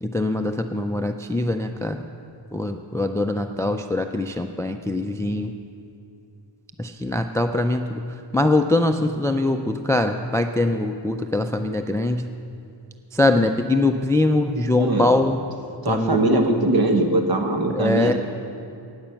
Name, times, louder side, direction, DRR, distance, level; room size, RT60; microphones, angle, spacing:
voice 1, 0.0-2.0 2.5-5.5 6.8-8.0 8.3-12.3 13.1-15.4 15.9-16.4 17.7-18.1, left 2 dB, 5° left, 7 dB, 0.3 m, -22 dB
voice 2, 14.7-15.1 15.8-18.1, right 2 dB, 50° right, 4 dB, 1.3 m, -21 dB
15.5 x 9.7 x 5.8 m, 2.6 s
wide cardioid pair, 165°, 46 cm